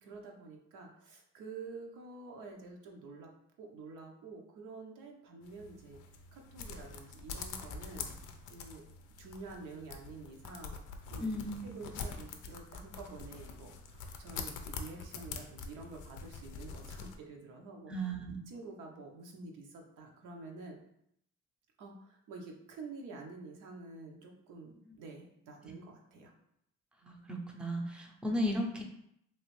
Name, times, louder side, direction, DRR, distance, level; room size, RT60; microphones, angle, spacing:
voice 1, 0.0-3.3 3.6-6.0 6.3-8.1 8.5-8.8 9.2-10.8 11.1-11.4 11.6-17.9 18.5-20.8 21.8-26.3, right 3 dB, 85° right, 1 dB, 0.7 m, -48 dB
sound 1, 5.4-17.2, left 5 dB, 90° left, 0.5 m, -45 dB
voice 2, 11.2-11.7 17.9-18.4 27.0-28.8, equal, 5° right, 1 dB, 0.5 m, -35 dB
3.1 x 2.4 x 3.1 m, 0.75 s
cardioid pair, 90°, 30 cm